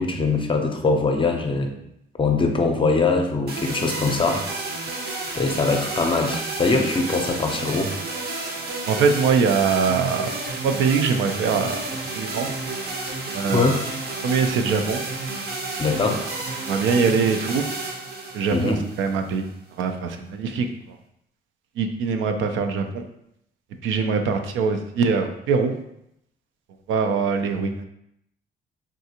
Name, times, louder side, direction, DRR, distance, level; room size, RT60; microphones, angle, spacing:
voice 1, 0.0-1.7 2.2-4.5 5.4-7.9 13.5-13.8 15.8-16.2 18.5-18.8, left 3 dB, 25° left, 4 dB, 0.5 m, -22 dB
sound 1, 3.5-19.5, right 3 dB, 55° right, 0.7 m, -31 dB
voice 2, 8.9-10.3 10.6-11.8 12.1-12.5 13.3-13.6 14.2-15.0 16.7-17.6 18.3-19.5 19.8-20.7 21.8-23.0 23.8-25.7 26.9-27.8, right 5 dB, 80° right, 6 dB, 0.4 m, -22 dB
3.6 x 2.4 x 2.8 m, 0.77 s
cardioid pair, 90°, 20 cm